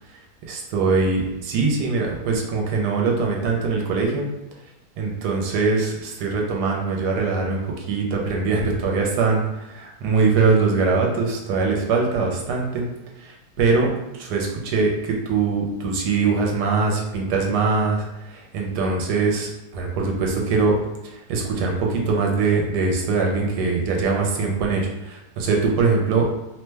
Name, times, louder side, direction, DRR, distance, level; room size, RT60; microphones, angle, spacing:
voice 1, 0.5-4.3 5.0-12.9 13.2-20.8 21.0-26.3, right 4 dB, 80° right, 0 dB, 1.2 m, -22 dB
2.9 x 2.1 x 3.2 m, 0.93 s
omnidirectional pair, 1.8 m